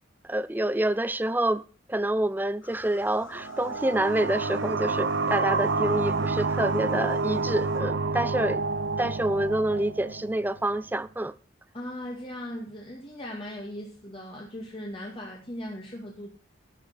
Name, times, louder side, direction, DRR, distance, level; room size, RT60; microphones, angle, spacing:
voice 1, 0.2-8.6 9.0-11.3, right 1 dB, 10° right, 0.5 m, -27 dB
sound 1, 2.6-7.8, left 5 dB, 85° left, 1.6 m, -50 dB
sound 2, 3.3-10.7, right 3 dB, 60° right, 0.7 m, -29 dB
voice 2, 11.7-16.3, equal, 25° left, 2.0 m, -38 dB
12.0 x 6.7 x 6.6 m
head